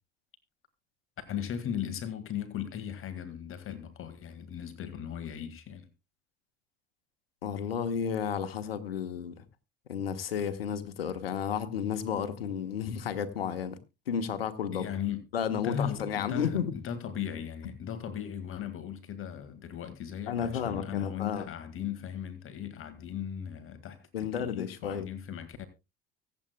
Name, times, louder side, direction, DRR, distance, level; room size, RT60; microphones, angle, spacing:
voice 1, 1.3-5.9 14.7-15.2 15.5-25.7, left 9 dB, 45° left, 1.8 m, -37 dB
voice 2, 7.4-9.4 9.9-13.8 14.1-14.9 15.3-16.7 20.3-21.4 24.1-25.1, left 8 dB, 90° left, 1.3 m, -32 dB
24.0 x 8.2 x 2.2 m
hypercardioid pair, 70°, 29 cm